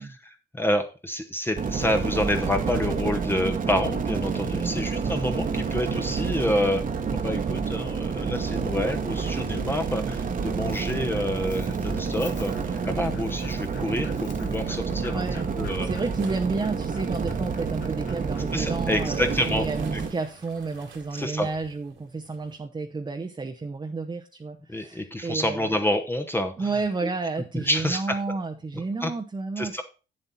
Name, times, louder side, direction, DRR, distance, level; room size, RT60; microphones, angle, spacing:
voice 1, 0.0-6.8 7.1-15.2 15.6-15.9 18.5-19.7 19.9-20.0 21.2-21.5 24.7-26.7 27.5-28.2 28.7-29.1 29.6-29.8, left 1 dB, 10° left, 4 dB, 0.9 m, -28 dB
sound 1, 1.6-20.1, right 5 dB, 40° right, 1.2 m, -29 dB
voice 2, 4.5-4.8 15.1-15.5 15.8-25.8 26.6-29.8, right 3 dB, 25° right, 5 dB, 0.8 m, -31 dB
Dog, 10.1-20.9, left 6 dB, 60° left, 1.7 m, -50 dB
sound 2, 11.8-22.6, right 5 dB, 70° right, 2.2 m, -46 dB
8.8 x 7.6 x 4.1 m, 0.32 s
cardioid pair, 90°, 20 cm